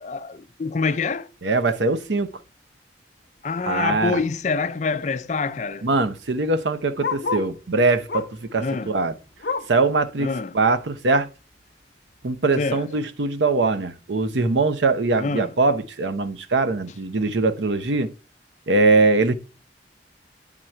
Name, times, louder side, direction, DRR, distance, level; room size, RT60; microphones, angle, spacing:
voice 1, 0.0-1.3 3.4-5.9 8.6-8.9 10.2-10.6 12.6-12.8 15.2-15.5, left 4 dB, 40° left, 0.4 m, -26 dB
voice 2, 1.4-2.3 3.7-4.2 5.8-9.1 9.7-11.3 12.2-18.1 18.7-19.3, right 3 dB, 80° right, 0.7 m, -22 dB
Bark, 5.5-7.6 8.1-8.5 8.9-9.9 10.3-10.4 10.8-10.9 11.6-11.7, left 5 dB, 60° left, 0.9 m, -32 dB
9.1 x 3.7 x 4.4 m
head